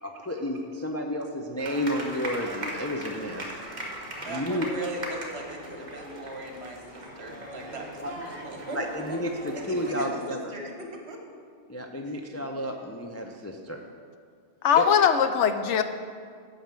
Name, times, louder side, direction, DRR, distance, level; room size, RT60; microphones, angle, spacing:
voice 1, 0.0-3.5 4.3-4.7 8.0-8.1 8.7-10.5 11.7-13.8 14.8-14.9, equal, 20° left, 1 dB, 0.4 m, -31 dB
sound 1, 1.6-9.9, right 1 dB, 40° right, 1.6 m, -39 dB
voice 2, 4.2-8.8 9.7-11.2 12.4-12.5, right 1 dB, 60° right, 1 dB, 1.6 m, -39 dB
voice 3, 14.6-15.8, left 8 dB, 80° left, 9 dB, 0.9 m, -21 dB
9.1 x 5.6 x 7.5 m, 2.1 s
omnidirectional pair, 1.2 m